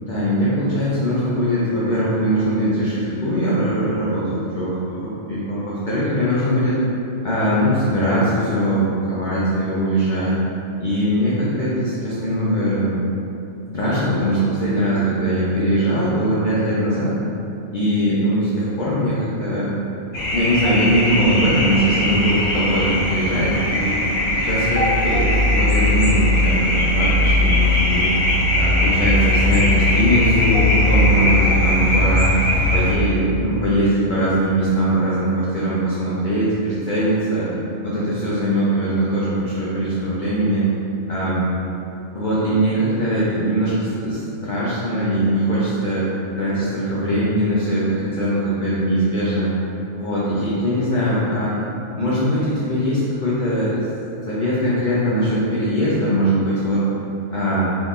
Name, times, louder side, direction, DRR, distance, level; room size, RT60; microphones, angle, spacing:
voice 1, 0.1-6.8 7.2-10.3 10.8-13.0 13.7-17.2 17.7-19.8 20.3-24.0 24.4-28.1 28.6-32.3 32.7-37.5 37.8-40.7 41.1-41.5 42.1-46.1 46.4-49.5 49.9-51.6 52.0-53.8 54.3-56.8 57.3-57.8, equal, 60° left, -9 dB, 0.5 m, -21 dB
sound 1, 20.1-32.9, left 1 dB, 75° left, 1.1 m, -19 dB
3.6 x 2.9 x 2.5 m, 2.8 s
omnidirectional pair, 1.5 m